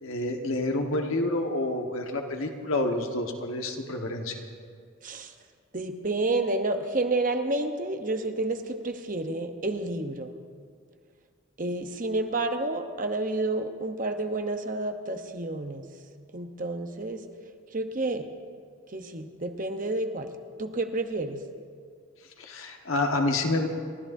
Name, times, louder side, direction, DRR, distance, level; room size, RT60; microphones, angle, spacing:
voice 1, 0.0-4.3 22.4-23.7, left 2 dB, 75° left, 3 dB, 1.4 m, -28 dB
voice 2, 5.7-10.3 11.6-15.8 16.3-17.2 17.7-18.3 18.9-20.3 20.6-21.4, right 2 dB, 40° right, 6 dB, 0.9 m, -30 dB
29.5 x 14.0 x 2.7 m, 2.1 s
head